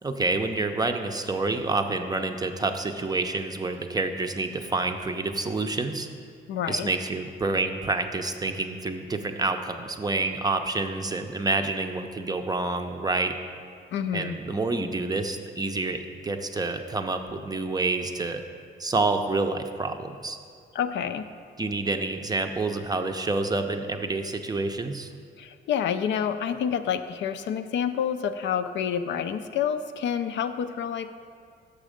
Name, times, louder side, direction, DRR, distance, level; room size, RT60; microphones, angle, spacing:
voice 1, 0.0-6.1 6.7-13.3 14.1-18.4 18.8-20.4 21.6-25.1, right 3 dB, 20° right, 6 dB, 0.5 m, -28 dB
voice 2, 6.5-6.9 13.9-14.4 20.7-21.3 25.4-31.2, left 8 dB, 65° left, 9 dB, 0.4 m, -28 dB
6.6 x 6.2 x 5.0 m, 2.2 s
cardioid pair, 90°, 20 cm